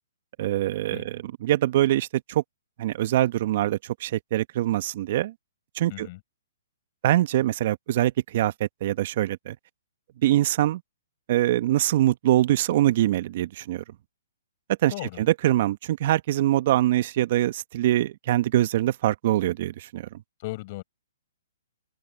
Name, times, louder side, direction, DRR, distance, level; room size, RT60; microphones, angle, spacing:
voice 1, 0.4-2.4 2.8-5.3 5.7-6.1 7.0-9.6 10.2-10.8 11.3-13.8 14.8-20.1, right 14 dB, 50° right, 1.4 m, -23 dB
voice 2, 14.9-15.3 20.4-20.8, left 20 dB, 40° left, 6.7 m, -36 dB
hypercardioid pair, 135°, 0 cm